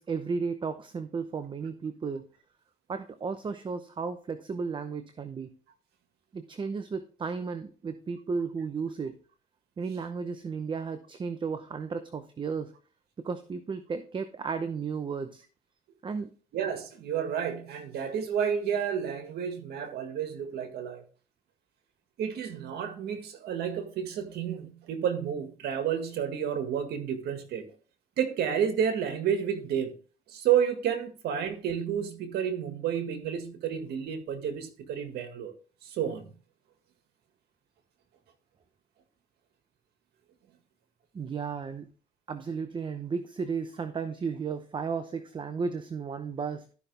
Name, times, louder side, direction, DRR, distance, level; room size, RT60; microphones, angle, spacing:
voice 1, 0.0-2.3 2.9-5.5 6.3-9.2 9.8-12.7 13.2-15.4 16.0-16.3 41.1-41.9 42.3-46.7, right 5 dB, 30° right, 0.7 m, -34 dB
voice 2, 16.5-21.0 22.2-27.6 28.2-29.9 30.3-35.5 35.8-36.3, right 8 dB, 75° right, 1.8 m, -30 dB
13.0 x 5.7 x 3.4 m
cardioid pair, 110°, 17 cm